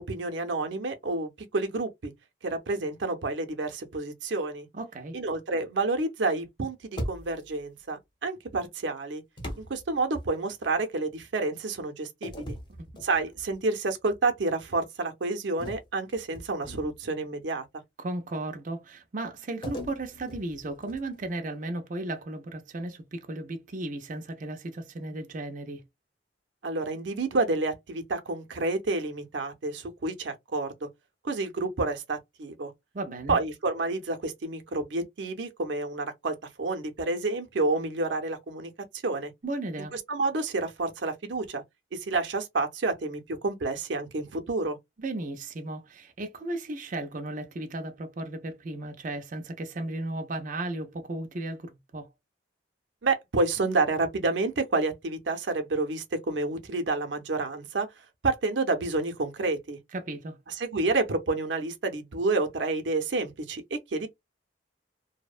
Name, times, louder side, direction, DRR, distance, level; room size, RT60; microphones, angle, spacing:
voice 1, 0.0-2.1 2.4-4.7 5.1-9.2 9.6-12.6 13.0-17.7 26.6-30.9 31.2-32.7 33.3-38.7 39.0-39.3 39.9-41.6 41.9-44.8 53.0-57.9 58.2-59.8 60.5-64.1, right 3 dB, 90° right, 0.6 m, -29 dB
voice 2, 4.7-5.2 18.0-25.8 32.9-33.4 39.4-39.9 45.0-52.1 59.9-60.4, right 2 dB, 45° right, 0.5 m, -35 dB
sound 1, 7.0-7.6 9.4-10.7 12.2-13.6 14.0-14.3 15.6-17.1 19.6-21.3, equal, 25° left, 0.9 m, -39 dB
2.7 x 2.1 x 2.4 m
head